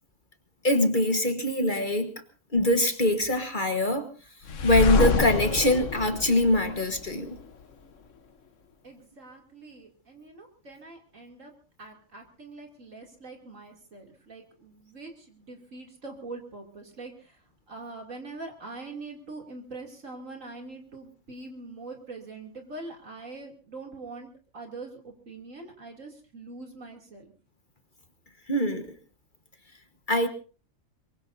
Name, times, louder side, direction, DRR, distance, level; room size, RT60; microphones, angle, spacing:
voice 1, 0.6-2.1 2.5-4.1 4.6-7.4 28.5-28.9 30.1-30.3, left 1 dB, 35° left, 7 dB, 1.5 m, -23 dB
sound 1, 4.5-7.4, left 4 dB, 65° left, 1.4 m, -27 dB
voice 2, 8.8-11.5 11.8-27.3, right 3 dB, 65° right, 2 dB, 3.3 m, -43 dB
23.0 x 23.0 x 2.7 m, 0.37 s
omnidirectional pair, 1.4 m